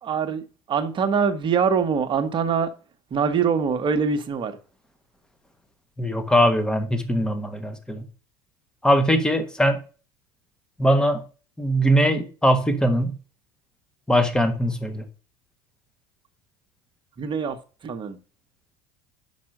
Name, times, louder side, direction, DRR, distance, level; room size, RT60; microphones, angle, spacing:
voice 1, 0.0-2.7 3.1-4.6 17.2-17.6 17.8-18.2, right 6 dB, 35° right, 1.2 m, -24 dB
voice 2, 6.0-8.0 8.8-9.8 10.8-11.2 11.6-13.1 14.1-15.0, equal, 5° left, 1.4 m, -21 dB
5.8 x 5.3 x 6.5 m
hypercardioid pair, 85°, 13 cm